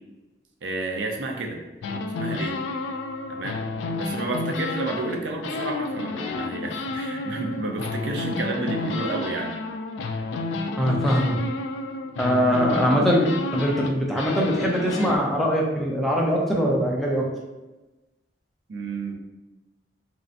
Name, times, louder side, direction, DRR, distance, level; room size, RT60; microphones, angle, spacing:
voice 1, 0.6-1.6 2.2-2.6 3.3-3.6 4.0-9.6 18.7-19.1, right 2 dB, 75° right, 2 dB, 0.5 m, -31 dB
sound 1, 1.8-5.2 5.4-15.2, left 3 dB, 85° left, 0.3 m, -30 dB
voice 2, 10.8-11.4 12.2-17.2, equal, ahead, -3 dB, 0.5 m, -22 dB
3.1 x 2.7 x 2.5 m, 1.1 s
head